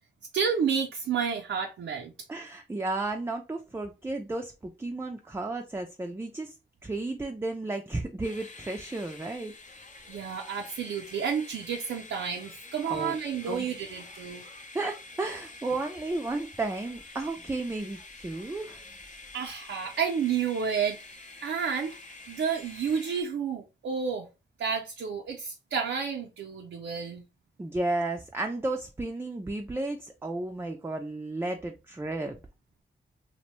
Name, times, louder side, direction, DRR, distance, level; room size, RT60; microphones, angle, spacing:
voice 1, 0.3-2.1 10.1-14.4 19.3-22.0 22.3-24.3 24.6-27.2, right 6 dB, 85° right, 0.4 m, -30 dB
voice 2, 2.3-6.5 6.8-9.5 12.9-13.1 13.5-13.7 14.7-18.8 27.6-32.4, right 2 dB, 10° right, 0.3 m, -33 dB
sound 1, 8.2-23.2, left 3 dB, 40° left, 0.5 m, -47 dB
2.5 x 2.0 x 2.9 m
cardioid pair, 50°, 20 cm